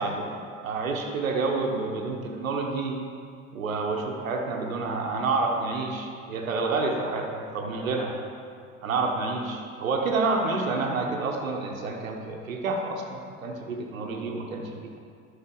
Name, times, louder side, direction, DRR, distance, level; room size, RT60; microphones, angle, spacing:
voice 1, 0.0-3.0 3.5-8.2 8.8-15.0, right 3 dB, 85° right, 1 dB, 0.9 m, -29 dB
11.5 x 5.6 x 3.8 m, 2.2 s
figure-of-eight pair, 60°, 40 cm